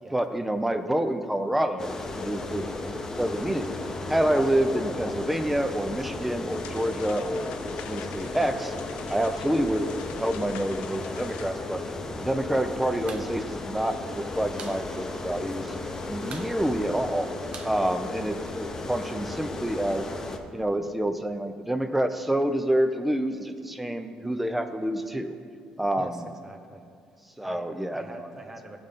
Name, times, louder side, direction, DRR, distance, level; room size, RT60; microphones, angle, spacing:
voice 1, 0.1-3.8 4.1-7.5 7.9-8.7 9.1-11.8 12.2-15.7 16.1-17.3 17.6-20.1 20.5-25.4 25.8-26.3 27.4-28.3, right 1 dB, 5° right, 8 dB, 0.6 m, -28 dB
sound 1, 1.8-20.4, left 2 dB, 25° left, 0.9 m, -35 dB
sound 2, 6.5-11.5, left 9 dB, 85° left, 0.4 m, -45 dB
voice 2, 9.0-9.4 17.6-18.0 26.0-26.8 27.4-27.7 27.9-28.8, right 2 dB, 20° right, 5 dB, 1.0 m, -44 dB
sound 3, 13.1-13.3 13.6-13.7 14.0-14.8 15.1-15.2 15.5-15.9 16.2-18.6, right 6 dB, 50° right, 0.6 m, -44 dB
15.0 x 5.1 x 3.8 m, 2.3 s
cardioid pair, 100°, 2 cm